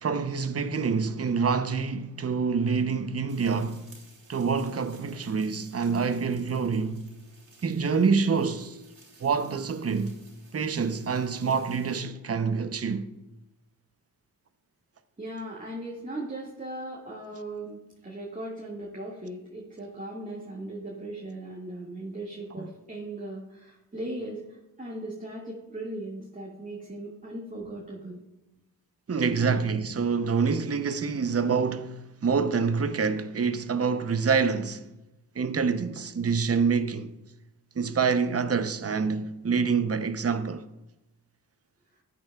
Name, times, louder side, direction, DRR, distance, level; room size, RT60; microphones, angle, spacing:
voice 1, 0.0-3.9 4.3-7.1 7.6-8.8 9.2-10.2 10.5-13.1 22.6-22.7 29.1-34.9 35.3-37.1 37.7-40.7, right 5 dB, 35° right, 0.8 m, -26 dB
sound 1, 3.3-12.0, right 3 dB, 65° right, 3.0 m, -56 dB
voice 2, 15.2-28.2 29.3-29.6, right 1 dB, 20° right, 2.1 m, -38 dB
14.0 x 8.6 x 2.4 m
supercardioid pair, 40°, 40 cm